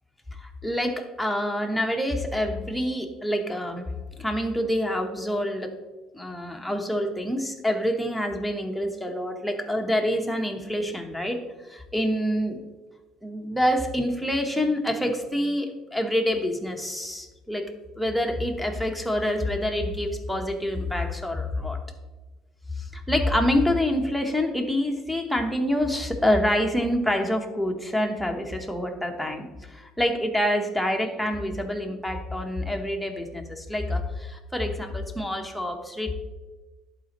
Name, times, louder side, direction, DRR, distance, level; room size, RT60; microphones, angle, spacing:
voice 1, 0.4-3.9 4.2-5.7 6.1-12.6 13.2-17.7 18.0-21.8 22.8-36.1, left 1 dB, ahead, 2 dB, 1.1 m, -27 dB
11.0 x 4.3 x 3.0 m, 1.2 s
supercardioid pair, 95°, 0 cm